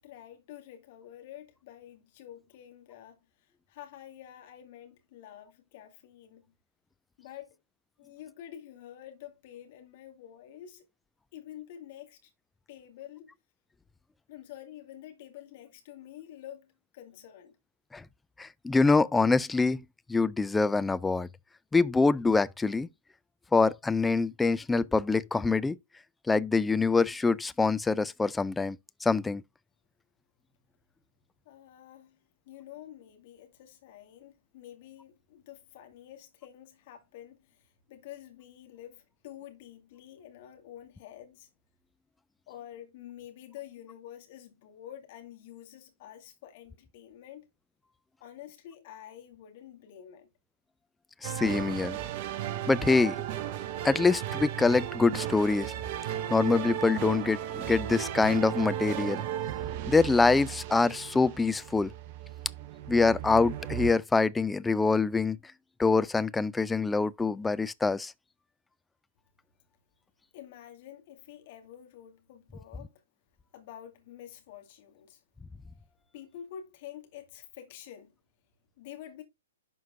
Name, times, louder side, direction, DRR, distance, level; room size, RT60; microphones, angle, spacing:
voice 1, 0.0-6.5 7.2-7.6 8.0-10.9 11.3-12.3 12.7-13.3 14.3-17.6 31.5-41.5 42.5-47.5 48.2-50.3 70.3-73.0 73.5-75.2 76.1-78.1 78.8-79.2, left 11 dB, 45° left, 2.2 m, -48 dB
voice 2, 18.4-19.8 20.1-21.3 21.7-22.9 23.5-25.8 26.3-29.4 51.2-52.0 52.7-53.2 53.8-55.7 56.3-59.2 59.9-61.9 62.9-65.4 65.8-68.1, left 4 dB, 10° left, 0.3 m, -25 dB
sound 1, 51.2-63.9, right 11 dB, 40° right, 0.7 m, -35 dB
11.5 x 4.6 x 2.5 m
figure-of-eight pair, 115°, 0 cm